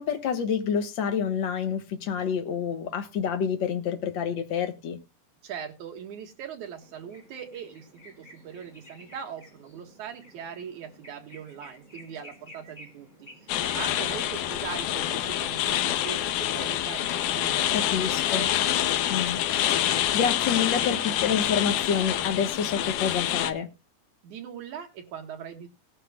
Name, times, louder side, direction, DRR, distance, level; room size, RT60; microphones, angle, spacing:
voice 1, 0.0-5.0 17.7-18.5 19.1-19.4 19.7-23.7, left 7 dB, 55° left, 1.3 m, -28 dB
voice 2, 5.4-18.8 24.2-25.7, right 8 dB, 70° right, 3.0 m, -41 dB
sound 1, 6.8-21.5, left 1 dB, 15° left, 3.6 m, -52 dB
sound 2, 13.5-23.5, left 12 dB, 90° left, 2.4 m, -27 dB
18.0 x 10.5 x 2.2 m
omnidirectional pair, 3.6 m